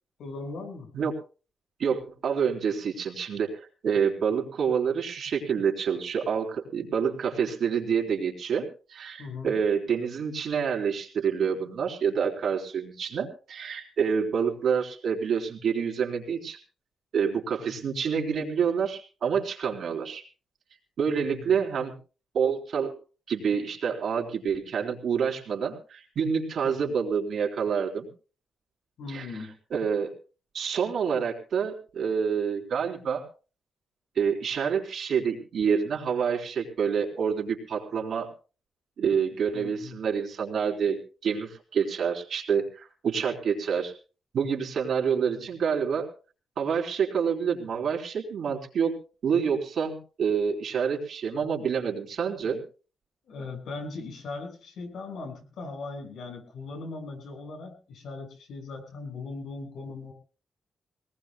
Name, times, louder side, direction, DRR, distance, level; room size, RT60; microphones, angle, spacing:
voice 1, 0.2-0.9 9.2-9.5 17.7-17.8 21.1-21.6 26.8-26.9 29.0-29.5 39.5-40.0 45.3-45.5 53.3-60.1, left 3 dB, 85° left, 3 dB, 5.6 m, -39 dB
voice 2, 1.8-16.6 17.1-20.2 21.0-21.9 22.3-22.9 23.3-28.1 29.1-29.3 29.7-30.1 30.5-33.2 34.2-38.3 39.0-43.9 44.3-46.1 46.6-49.0 49.2-52.6, right 6 dB, 65° right, 1 dB, 3.6 m, -27 dB
24.0 x 19.0 x 2.2 m, 0.36 s
wide cardioid pair, 145°, 0 cm